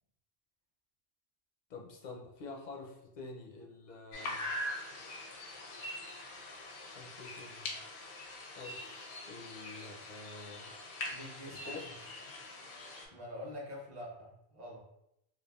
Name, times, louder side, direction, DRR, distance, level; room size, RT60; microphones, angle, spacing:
voice 1, 1.7-4.5 7.0-7.7 8.6-10.7 11.4-11.8, left 3 dB, 55° left, 0 dB, 0.5 m, -48 dB
sound 1, 4.1-13.1, left 1 dB, 90° left, 0.9 m, -43 dB
voice 2, 11.1-11.8 13.1-14.8, left 1 dB, 45° right, -4 dB, 0.9 m, -45 dB
3.3 x 2.3 x 2.2 m, 0.79 s
omnidirectional pair, 1.1 m